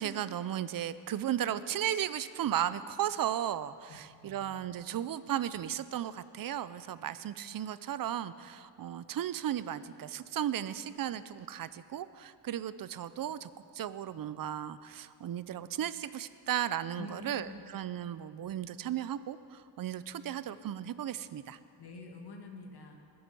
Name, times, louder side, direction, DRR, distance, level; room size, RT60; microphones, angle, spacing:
voice 1, 0.0-21.6, right 11 dB, 50° right, 15 dB, 0.6 m, -35 dB
voice 2, 3.9-4.6 17.0-17.6 21.8-23.0, left 3 dB, 60° left, 2 dB, 2.0 m, -47 dB
20.5 x 7.9 x 5.4 m, 2.3 s
cardioid pair, 100°, 46 cm